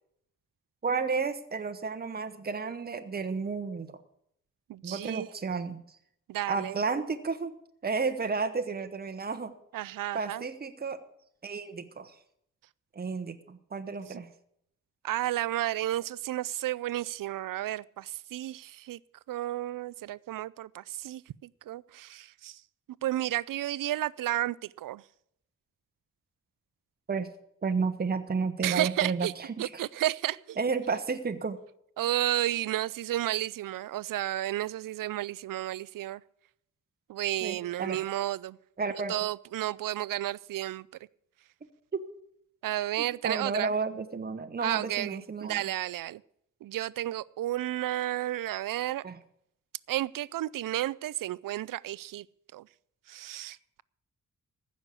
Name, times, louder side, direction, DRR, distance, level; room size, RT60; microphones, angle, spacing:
voice 1, 0.8-4.0 4.8-5.8 6.5-7.5 7.8-9.5 10.1-11.0 11.4-12.1 12.9-14.3 27.1-27.3 27.6-29.8 30.6-31.6 37.4-38.0 38.8-39.2 41.9-42.0 43.0-45.6 49.0-49.2, right 4 dB, 30° right, 1.0 m, -32 dB
voice 2, 4.7-5.3 6.3-6.8 9.7-10.4 14.1-14.2 15.0-19.0 19.3-22.6 23.0-25.0 28.6-29.3 29.6-30.6 32.0-36.2 37.1-38.6 39.1-40.9 42.6-43.7 44.6-46.2 46.6-49.0 49.9-52.3 52.5-52.7 53.1-53.8, right 14 dB, 80° right, 0.5 m, -32 dB
15.0 x 6.5 x 8.3 m
wide cardioid pair, 105°, 32 cm